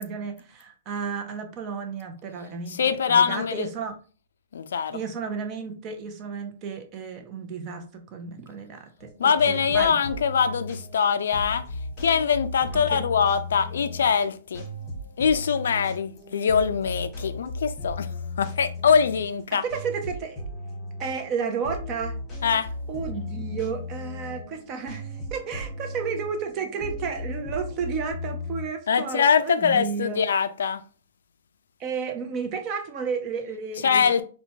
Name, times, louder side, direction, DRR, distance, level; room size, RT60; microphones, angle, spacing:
voice 1, 0.0-4.0 4.9-10.0 12.7-13.0 19.5-20.4 21.0-22.2 22.9-30.3 31.8-34.2, right 6 dB, 30° right, 0.6 m, -32 dB
voice 2, 2.7-3.7 4.5-5.0 9.2-11.7 12.0-14.7 15.2-19.6 22.4-22.7 28.9-30.8 33.8-34.2, left 6 dB, 90° left, 0.3 m, -23 dB
sound 1, 9.0-28.7, left 2 dB, 15° left, 1.1 m, -36 dB
4.3 x 2.2 x 2.7 m
hypercardioid pair, 155°, 0 cm